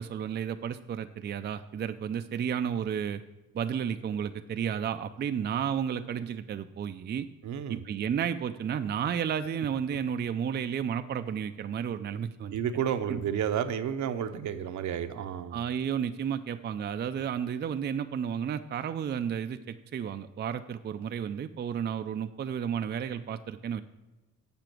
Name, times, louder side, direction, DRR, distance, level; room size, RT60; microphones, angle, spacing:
voice 1, 0.0-3.2 3.5-7.3 7.7-12.5 13.1-13.2 15.5-23.8, right 8 dB, 35° right, 8 dB, 0.4 m, -32 dB
voice 2, 7.4-7.8 12.5-15.6, right 9 dB, 70° right, 8 dB, 0.8 m, -31 dB
7.4 x 7.0 x 6.0 m, 1.1 s
cardioid pair, 90°, 30 cm